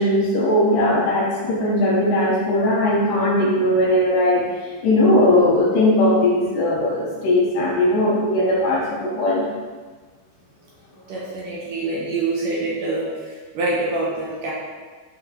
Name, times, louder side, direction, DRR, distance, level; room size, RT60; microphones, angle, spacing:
voice 1, 0.0-4.5 4.8-9.5, left 1 dB, 70° left, -3 dB, 2.4 m, -19 dB
voice 2, 11.1-13.1 13.5-14.5, right 2 dB, 70° right, -5 dB, 2.2 m, -25 dB
9.8 x 4.8 x 2.8 m, 1.4 s
omnidirectional pair, 4.5 m